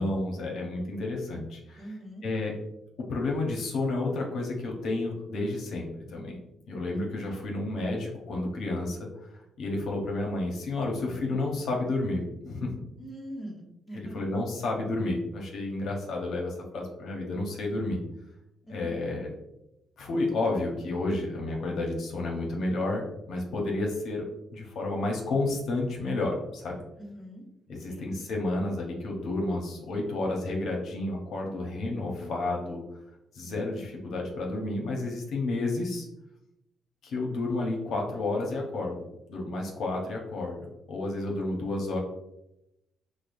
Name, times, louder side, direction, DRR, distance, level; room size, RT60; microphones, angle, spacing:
voice 1, 0.0-1.8 2.2-2.5 3.0-6.4 6.7-12.8 13.9-18.0 18.7-19.3 20.0-24.3 24.5-26.8 27.7-32.8 33.3-36.1 37.0-40.6 40.9-42.0, left 2 dB, 70° left, -1 dB, 0.7 m, -31 dB
voice 2, 1.8-2.2 6.9-7.2 13.0-14.2 18.7-19.1 27.0-27.4 27.8-28.1 33.4-33.8, right 1 dB, 15° left, -3 dB, 1.0 m, -43 dB
4.8 x 2.1 x 2.5 m, 0.86 s
cardioid pair, 90°, 0 cm